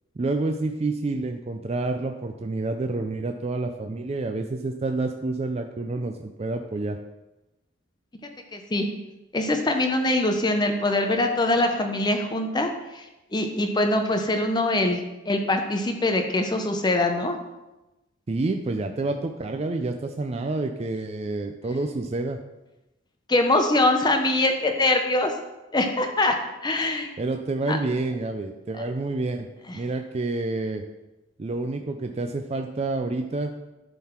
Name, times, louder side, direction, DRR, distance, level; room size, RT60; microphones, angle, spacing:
voice 1, 0.2-7.0 18.3-22.4 27.2-29.5 29.7-30.8 31.4-33.5, right 2 dB, 35° right, 5 dB, 0.4 m, -28 dB
voice 2, 8.5-8.9 9.3-13.0 13.3-15.0 15.3-17.4 23.3-25.3 25.7-26.3 26.6-27.1 27.7-27.8 29.7-29.8, left 2 dB, 20° left, 5 dB, 0.6 m, -23 dB
11.0 x 3.8 x 4.4 m, 1.0 s
head